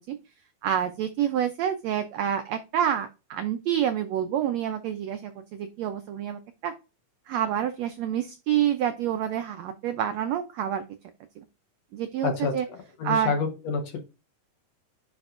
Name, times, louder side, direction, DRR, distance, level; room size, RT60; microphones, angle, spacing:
voice 1, 0.6-6.7 7.3-10.8 11.4-11.5 11.9-12.7 13.0-13.3, right 10 dB, 85° right, 9 dB, 1.5 m, -28 dB
voice 2, 12.2-14.0, left 5 dB, 60° left, 4 dB, 2.1 m, -29 dB
10.5 x 4.4 x 2.5 m, 0.28 s
omnidirectional pair, 3.9 m